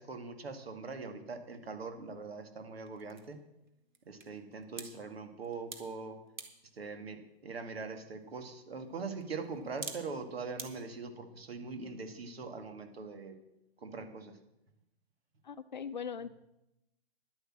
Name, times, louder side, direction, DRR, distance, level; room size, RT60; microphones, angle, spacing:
voice 1, 0.0-3.4 4.1-6.2 6.7-13.3 13.8-14.4, right 4 dB, 75° right, 7 dB, 2.2 m, -42 dB
sound 1, 2.0-10.7, right 5 dB, 50° right, 1.8 m, -52 dB
voice 2, 15.4-16.3, left 7 dB, 50° left, 13 dB, 0.6 m, -40 dB
11.0 x 8.2 x 7.5 m, 0.88 s
hypercardioid pair, 180°, 31 cm